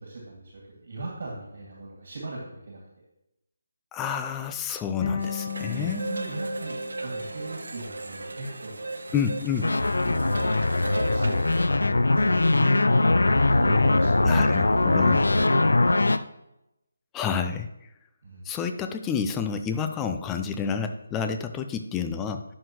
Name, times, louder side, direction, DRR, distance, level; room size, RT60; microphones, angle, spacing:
voice 1, 0.0-2.8 5.7-9.1 10.0-10.5 10.9-11.8 12.2-12.7 13.2-15.7 18.2-18.4, right 2 dB, 55° right, -3 dB, 2.2 m, -38 dB
voice 2, 3.9-6.0 9.1-9.7 14.2-15.2 17.1-17.7 18.5-22.4, left 7 dB, 10° left, 7 dB, 0.4 m, -29 dB
sound 1, 5.0-8.1, left 6 dB, 35° left, 1.6 m, -35 dB
sound 2, 5.2-11.6, right 2 dB, 75° right, 0.8 m, -36 dB
sound 3, 9.6-16.2, left 2 dB, 85° left, 0.5 m, -21 dB
11.0 x 6.4 x 3.1 m, 0.88 s
figure-of-eight pair, 165°, 0 cm